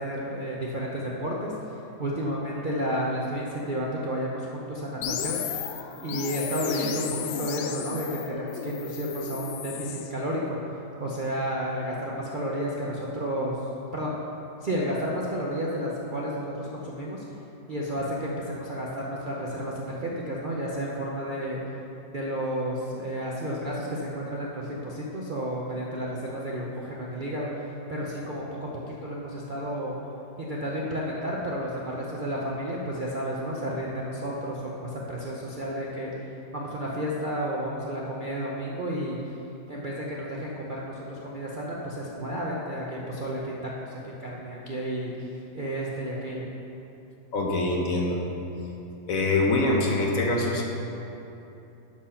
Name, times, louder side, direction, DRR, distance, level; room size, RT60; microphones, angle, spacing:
voice 1, 0.0-1.5 2.0-5.4 6.0-7.0 7.4-10.6 11.0-13.6 13.9-14.1 14.6-17.2 17.7-21.6 22.1-28.7 29.0-30.0 30.4-36.1 36.5-39.2 39.7-45.3 45.5-46.5, equal, 75° right, -4 dB, 0.4 m, -31 dB
sound 1, 5.0-10.1, left 7 dB, 85° left, 1.4 m, -34 dB
voice 2, 47.3-48.2 49.1-50.6, left 2 dB, 55° left, 0 dB, 1.1 m, -24 dB
11.0 x 4.6 x 5.7 m, 2.9 s
omnidirectional pair, 2.1 m